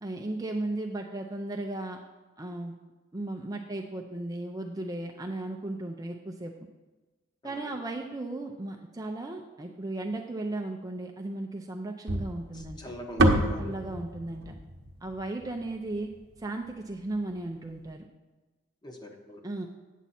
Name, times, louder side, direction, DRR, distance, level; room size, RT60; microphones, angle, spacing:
voice 1, 0.0-2.0 2.4-2.7 3.1-6.7 7.4-12.8 13.6-14.6 15.0-16.1 16.4-18.1 19.4-19.7, right 2 dB, 15° right, 2 dB, 0.5 m, -35 dB
sound 1, 12.1-16.4, right 1 dB, 50° right, 0.9 m, -28 dB
voice 2, 12.5-13.8 18.8-19.4, equal, 20° left, 3 dB, 0.9 m, -42 dB
9.1 x 7.3 x 4.2 m, 1.2 s
head